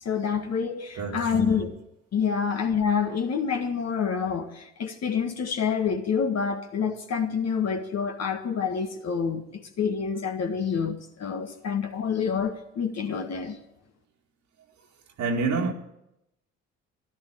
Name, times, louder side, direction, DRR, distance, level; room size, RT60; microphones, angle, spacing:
voice 1, 0.0-1.8 2.1-13.6, left 6 dB, 50° left, 1.7 m, -27 dB
voice 2, 1.0-1.7 15.2-15.7, right 4 dB, 55° right, 2.1 m, -28 dB
12.5 x 12.0 x 9.0 m
hypercardioid pair, 50°, 34 cm